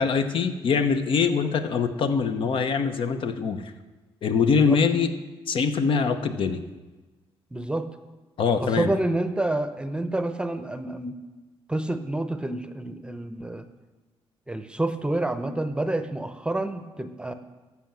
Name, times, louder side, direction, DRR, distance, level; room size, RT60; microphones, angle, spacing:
voice 1, 0.0-3.7 4.2-5.1 5.5-6.6 8.4-8.9, left 5 dB, 60° left, 8 dB, 0.9 m, -23 dB
voice 2, 7.5-7.9 8.6-11.1 11.7-13.6 14.5-17.3, right 1 dB, 10° right, 10 dB, 0.8 m, -28 dB
13.5 x 5.8 x 7.4 m, 1.2 s
cardioid pair, 105°, 10 cm